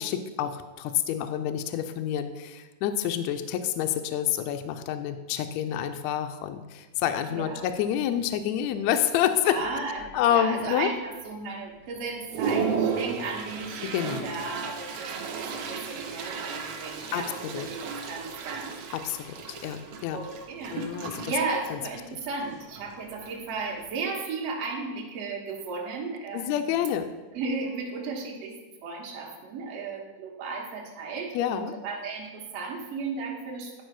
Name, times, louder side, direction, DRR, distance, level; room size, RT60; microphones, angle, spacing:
voice 1, 0.0-9.9 10.1-10.9 13.9-14.3 17.1-17.7 18.9-19.3 19.6-20.2 20.7-21.3 21.7-21.8 22.1-22.2 26.3-27.1 31.3-31.7, left 10 dB, 80° left, 8 dB, 1.6 m, -28 dB
Toilet flush, 7.0-7.1 7.6-7.8 8.1-8.7 9.2-9.3 9.6-10.3 10.8-10.9 11.4-11.5 12.0-23.9, right 5 dB, 75° right, 1.4 m, -35 dB
voice 2, 7.3-7.7 9.4-18.8 20.1-26.5 27.3-28.5 28.8-33.8, right 4 dB, 60° right, 0 dB, 2.1 m, -35 dB
11.0 x 4.8 x 4.7 m, 1.2 s
omnidirectional pair, 3.6 m